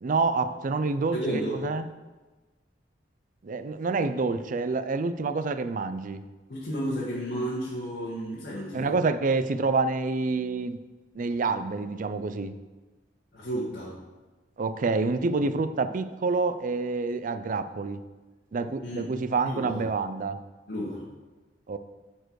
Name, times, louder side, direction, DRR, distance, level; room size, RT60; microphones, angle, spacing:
voice 1, 0.0-1.9 3.4-6.2 8.7-10.8 11.1-12.5 14.6-18.0 18.5-20.4 21.7-21.8, right 3 dB, 45° right, 11 dB, 0.4 m, -27 dB
voice 2, 1.1-1.6 6.5-8.9 13.3-13.9 18.8-19.1 19.4-19.8 20.7-21.0, equal, 60° left, -9 dB, 1.8 m, -32 dB
11.0 x 4.5 x 4.7 m, 1.2 s
head